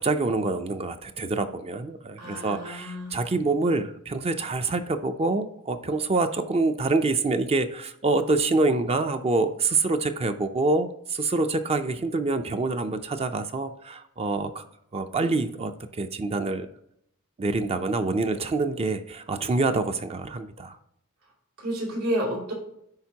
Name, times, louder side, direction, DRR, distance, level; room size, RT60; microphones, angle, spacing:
voice 1, 0.0-14.6 14.9-16.7 17.4-20.8, right 3 dB, 25° right, 8 dB, 0.4 m, -26 dB
voice 2, 2.2-3.2 21.6-22.5, equal, 85° right, -4 dB, 2.8 m, -30 dB
10.5 x 4.3 x 2.8 m, 0.74 s
head